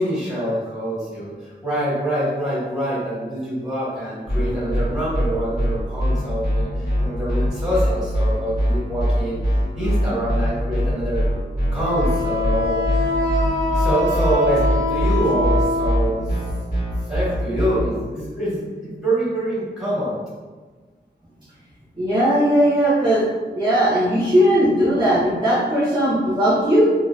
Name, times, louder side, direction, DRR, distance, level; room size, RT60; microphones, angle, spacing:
voice 1, 0.0-9.4 9.7-11.2 11.7-13.1 13.7-16.3 17.1-20.2, right 1 dB, 5° right, -9 dB, 1.3 m, -25 dB
sound 1, 4.3-17.8, equal, 50° left, 1.5 m, -21 dB
Wind instrument woodwind instrument, 11.8-16.3, left 1 dB, 75° left, 0.4 m, -24 dB
voice 2, 22.0-23.3 23.5-26.9, equal, 25° right, -10 dB, 0.6 m, -18 dB
2.7 x 2.6 x 2.2 m, 1.4 s
wide cardioid pair, 105°, 19 cm